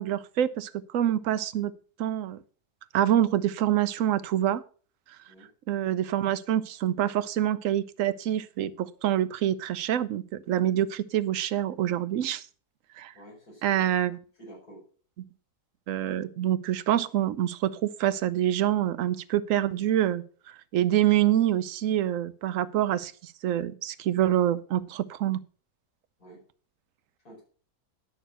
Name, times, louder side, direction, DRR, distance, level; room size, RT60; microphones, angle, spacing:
voice 1, 0.0-1.7 2.0-2.4 2.9-4.6 5.7-12.4 13.0-13.1 13.6-14.2 15.9-20.2 20.7-25.4, right 11 dB, 65° right, 13 dB, 1.0 m, -26 dB
voice 2, 13.1-13.9 14.4-14.8 26.2-26.4 27.2-27.4, right 1 dB, 70° left, -4 dB, 5.4 m, -48 dB
10.0 x 6.6 x 6.1 m, 0.41 s
omnidirectional pair, 1.6 m